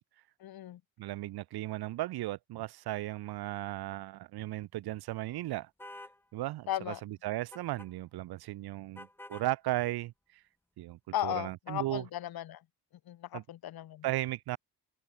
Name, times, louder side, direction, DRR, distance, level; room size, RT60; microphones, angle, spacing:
voice 1, 0.4-0.8 6.7-7.0 11.1-12.6 13.1-14.1, left 12 dB, 70° left, 2.0 m, -36 dB
voice 2, 1.0-5.7 6.3-10.4 10.8-12.0 13.3-13.4 14.0-14.6, right 16 dB, 80° right, 0.9 m, -36 dB
sound 1, 5.8-6.2 7.5-7.9 9.0-9.5, left 1 dB, 5° left, 2.2 m, -48 dB
open air
cardioid pair, 125°, 38 cm